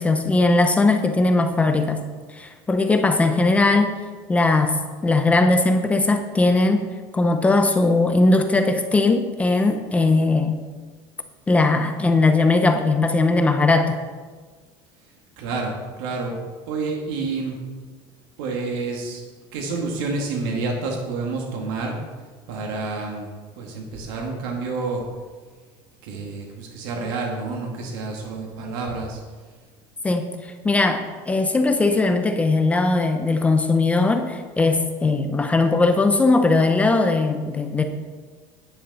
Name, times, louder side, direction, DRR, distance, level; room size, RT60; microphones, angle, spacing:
voice 1, 0.0-2.0 2.3-4.0 4.3-10.6 11.5-14.0 30.0-37.8, left 3 dB, 10° left, 6 dB, 0.6 m, -19 dB
voice 2, 15.4-16.4 16.7-17.6 18.4-19.2 19.5-22.0 22.5-25.0 26.0-29.2, right 3 dB, 80° right, 0 dB, 2.1 m, -29 dB
10.5 x 9.2 x 4.2 m, 1.4 s
cardioid pair, 155°, 11 cm